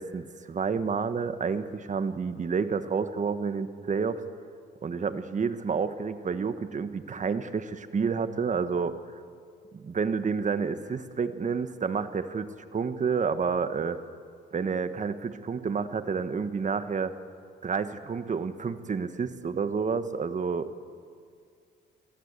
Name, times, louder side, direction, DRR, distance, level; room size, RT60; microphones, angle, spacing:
voice 1, 0.0-4.2 4.8-9.0 9.7-14.0 14.5-17.1 17.6-20.7, right 5 dB, 40° right, 11 dB, 1.4 m, -29 dB
23.5 x 15.0 x 8.3 m, 2.2 s
cardioid pair, 90°, 20 cm